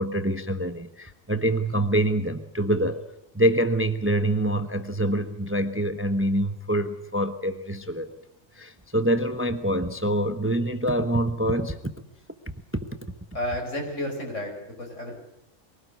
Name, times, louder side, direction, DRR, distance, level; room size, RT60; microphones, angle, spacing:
voice 1, 0.0-3.0 3.3-8.1 8.5-11.9 12.7-13.1, right 1 dB, 10° right, 9 dB, 1.0 m, -25 dB
voice 2, 13.3-15.1, left 1 dB, 75° left, 2 dB, 6.0 m, -31 dB
24.0 x 17.5 x 8.3 m, 0.85 s
omnidirectional pair, 1.3 m